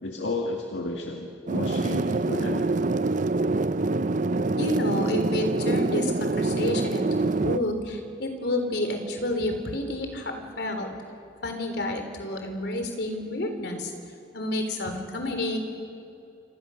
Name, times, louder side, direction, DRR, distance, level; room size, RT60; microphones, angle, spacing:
voice 1, 0.0-2.7, left 2 dB, 80° left, 1 dB, 2.1 m, -32 dB
sound 1, 1.5-7.6, right 3 dB, 45° right, 0.7 m, -25 dB
voice 2, 4.6-11.0 11.4-13.9 14.3-15.6, left 1 dB, 65° left, 5 dB, 3.7 m, -29 dB
29.0 x 26.5 x 6.5 m, 2.9 s
head